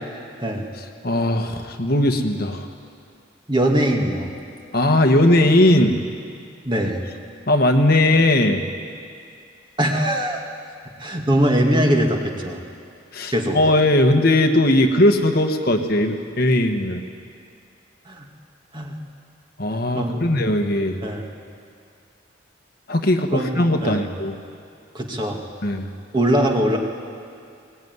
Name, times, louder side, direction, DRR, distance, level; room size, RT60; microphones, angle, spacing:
voice 1, 0.8-2.7 4.7-5.9 7.5-8.6 13.1-17.0 19.6-21.0 22.9-24.4 25.6-25.9, left 1 dB, 50° left, 5 dB, 1.4 m, -18 dB
voice 2, 3.5-4.3 6.7-7.0 9.8-10.4 11.0-12.6 13.3-13.6 18.1-18.3 18.7-18.9 19.9-20.2 21.0-21.3 23.3-23.5 23.8-24.0 24.9-25.4 26.1-26.8, right 1 dB, 25° right, 1 dB, 2.1 m, -21 dB
20.5 x 19.5 x 9.6 m, 2.4 s
head